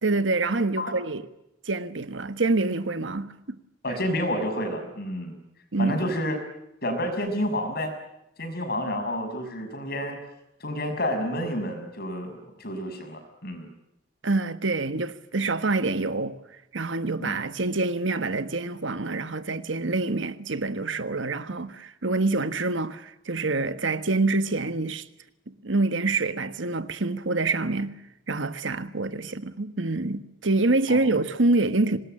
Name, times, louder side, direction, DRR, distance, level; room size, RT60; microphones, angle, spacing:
voice 1, 0.0-1.2 1.6-3.6 5.7-6.0 14.2-16.4 16.7-25.1 25.6-27.9 28.3-32.0, right 3 dB, 75° right, 1.4 m, -26 dB
voice 2, 3.8-5.3 5.8-6.4 6.8-7.9 8.4-10.2 10.6-13.7 17.2-17.4 30.9-31.2, equal, 55° left, 6.2 m, -29 dB
25.0 x 20.5 x 8.9 m
head